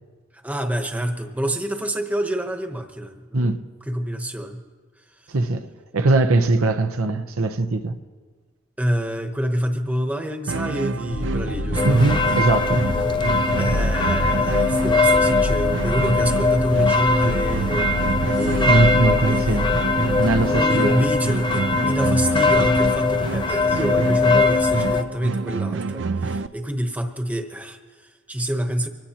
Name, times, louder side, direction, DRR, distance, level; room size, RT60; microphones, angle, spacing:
voice 1, 0.3-3.5 3.9-4.6 5.2-5.3 8.8-12.1 13.6-19.6 20.5-28.9, equal, 5° right, 0.9 m, -27 dB
voice 2, 5.3-5.7 5.9-8.0 11.9-12.9 18.7-19.7 20.2-21.0, right 2 dB, 90° right, 0.8 m, -20 dB
sound 1, 10.5-26.5, right 4 dB, 55° right, 0.4 m, -28 dB
sound 2, 11.1-20.6, left 1 dB, 70° left, 0.9 m, -28 dB
sound 3, 11.7-25.0, left 3 dB, 20° left, 0.5 m, -21 dB
25.0 x 18.0 x 2.9 m
head